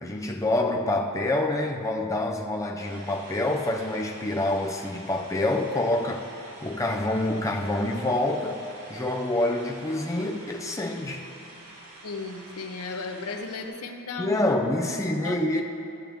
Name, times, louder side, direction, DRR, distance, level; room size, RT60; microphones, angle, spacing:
voice 1, 0.0-6.2 6.6-8.6 8.9-11.3 14.2-15.6, left 1 dB, 15° left, 1 dB, 0.5 m, -27 dB
sound 1, 2.8-13.7, right 1 dB, 80° right, 2.1 m, -47 dB
voice 2, 12.0-14.5 15.2-15.6, left 3 dB, 85° left, 4 dB, 0.8 m, -35 dB
15.0 x 7.3 x 3.5 m, 2.7 s
head